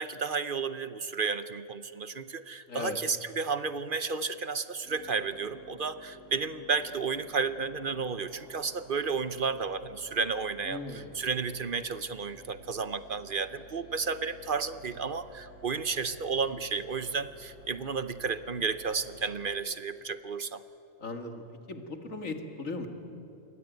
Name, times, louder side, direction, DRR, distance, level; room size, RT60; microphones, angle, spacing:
voice 1, 0.0-20.6, right 5 dB, 50° right, 13 dB, 0.8 m, -32 dB
sound 1, 4.8-19.6, right 1 dB, 70° right, 4.2 m, -54 dB
voice 2, 10.7-11.1 21.0-22.9, left 3 dB, 90° left, 6 dB, 2.5 m, -38 dB
28.0 x 22.5 x 9.3 m, 3.0 s
omnidirectional pair, 1.3 m